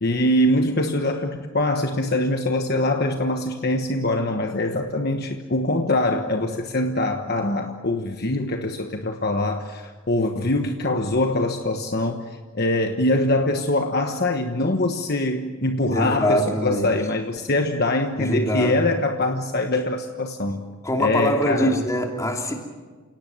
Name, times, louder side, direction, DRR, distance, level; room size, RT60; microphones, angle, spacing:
voice 1, 0.0-20.6 21.0-21.8, left 1 dB, 50° left, 5 dB, 1.2 m, -23 dB
voice 2, 15.9-17.0 18.2-18.8 20.8-22.5, equal, 15° left, 1 dB, 2.9 m, -23 dB
29.5 x 18.0 x 7.9 m, 1.5 s
head